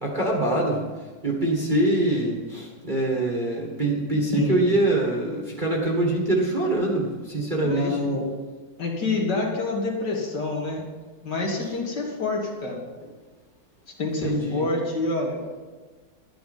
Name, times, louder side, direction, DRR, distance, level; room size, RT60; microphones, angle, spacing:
voice 1, 0.0-0.8 1.2-8.0 14.2-14.6, right 1 dB, 25° right, -2 dB, 1.5 m, -24 dB
voice 2, 4.3-4.6 7.6-8.3 8.8-10.9 11.2-12.8 14.0-15.4, left 3 dB, 55° left, -1 dB, 2.5 m, -27 dB
11.5 x 9.3 x 5.4 m, 1.3 s
omnidirectional pair, 2.2 m